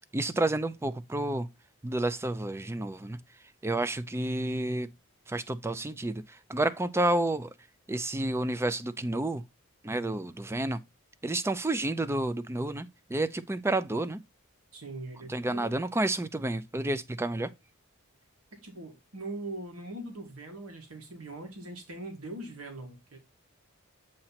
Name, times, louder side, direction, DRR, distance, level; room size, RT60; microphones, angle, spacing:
voice 1, 0.1-1.5 1.8-3.2 3.6-4.9 5.3-7.5 7.9-9.4 9.8-10.8 11.2-14.2 15.3-17.5, right 2 dB, 10° right, 0.3 m, -30 dB
voice 2, 14.7-15.7 18.5-23.2, right 2 dB, 85° right, 1.7 m, -41 dB
7.7 x 2.9 x 5.7 m
head